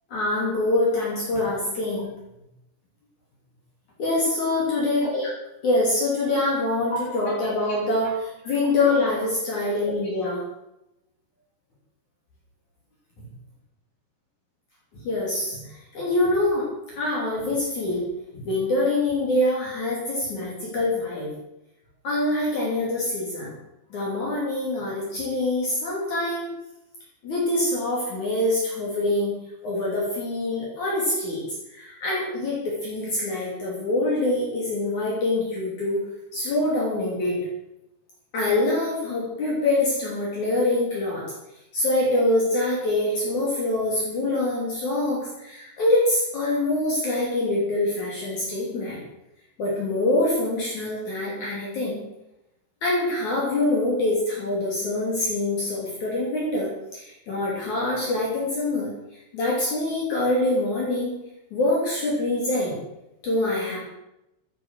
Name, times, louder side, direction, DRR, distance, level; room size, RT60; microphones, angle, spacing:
voice 1, 0.1-2.1 4.0-5.3 5.6-10.4 15.0-16.7 17.0-18.0 18.3-21.3 22.0-23.5 23.9-26.5 27.2-29.3 29.6-31.4 31.7-36.0 36.3-37.4 38.3-41.2 41.7-49.0 49.6-52.0 52.8-58.9 59.3-61.1 61.5-62.8 63.2-63.8, left 2 dB, 50° left, -5 dB, 4.1 m, -25 dB
14.0 x 8.8 x 6.4 m, 0.88 s
omnidirectional pair, 4.7 m